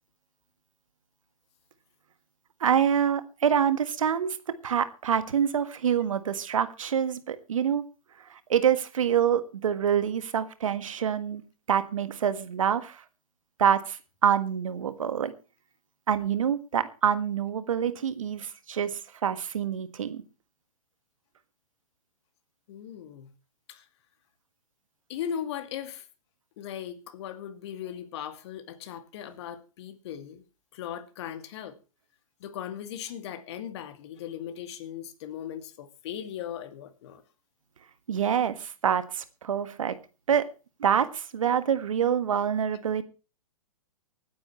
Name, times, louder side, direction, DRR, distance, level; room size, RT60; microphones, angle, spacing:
voice 1, 2.6-4.4 4.6-7.8 8.3-11.4 11.7-13.0 13.6-15.3 16.1-20.2 38.1-40.0 40.3-40.5 40.8-43.0, right 8 dB, 70° right, 1.6 m, -26 dB
voice 2, 22.7-23.3 23.7-23.9 25.1-26.1 26.6-30.4 30.7-31.8 32.4-37.2, left 9 dB, 50° left, 2.4 m, -38 dB
25.0 x 9.6 x 3.1 m
figure-of-eight pair, 115°, 18 cm